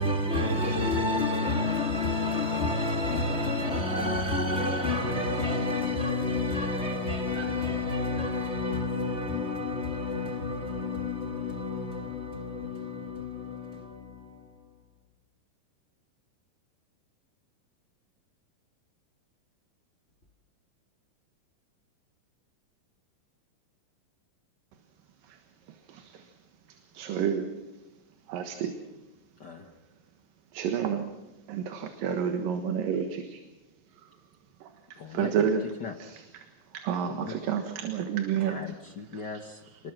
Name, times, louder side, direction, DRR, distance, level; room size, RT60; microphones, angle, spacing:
voice 1, 0.0-14.7, left 2 dB, 35° left, 1.0 m, -29 dB
voice 2, 25.7-26.3 26.7-27.5 28.3-28.8 30.5-31.1 31.5-33.4 34.0-34.1 34.6-35.6 36.0-36.2 36.7-38.6 39.1-39.3, right 8 dB, 80° right, 3.1 m, -30 dB
voice 3, 34.9-35.5 35.8-35.9 37.1-37.3 38.4-39.9, left 5 dB, 70° left, 1.0 m, -40 dB
28.5 x 20.5 x 6.0 m
omnidirectional pair, 4.0 m